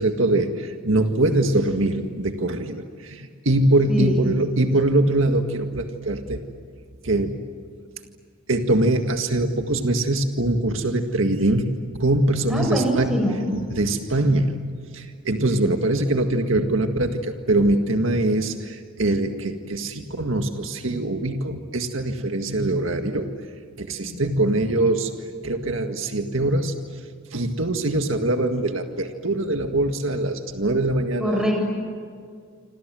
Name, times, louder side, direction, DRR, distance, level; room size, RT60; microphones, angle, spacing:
voice 1, 0.0-6.4 7.0-7.4 8.5-13.1 13.5-14.6 14.9-23.3 23.8-25.1 25.4-26.7 27.3-31.5, right 2 dB, 80° right, 5 dB, 1.9 m, -23 dB
voice 2, 12.5-13.4 24.0-24.1 31.2-31.7, equal, 5° right, 1 dB, 7.3 m, -23 dB
27.5 x 27.0 x 7.7 m, 2.1 s
head